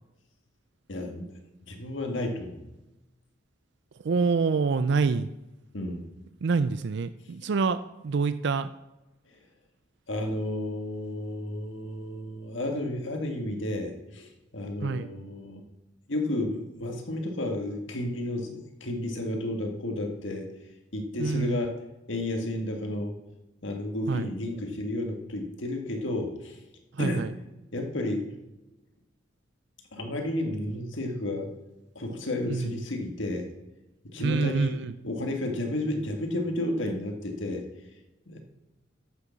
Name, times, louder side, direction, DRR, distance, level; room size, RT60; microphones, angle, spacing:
voice 1, 0.9-1.3 1.7-2.6 5.7-6.0 10.1-15.6 16.1-20.5 20.9-21.7 22.1-23.1 23.6-26.6 27.0-27.3 27.7-28.3 29.9-31.5 32.0-33.5 34.1-34.8 35.0-37.6 38.3-38.4, left 1 dB, 70° left, 3 dB, 1.9 m, -32 dB
voice 2, 4.0-5.3 6.4-8.7 14.8-15.1 21.2-21.6 24.1-24.3 26.9-27.4 32.5-32.8 34.2-34.9, right 4 dB, 60° right, 12 dB, 0.4 m, -26 dB
11.0 x 6.8 x 7.2 m, 1.0 s
head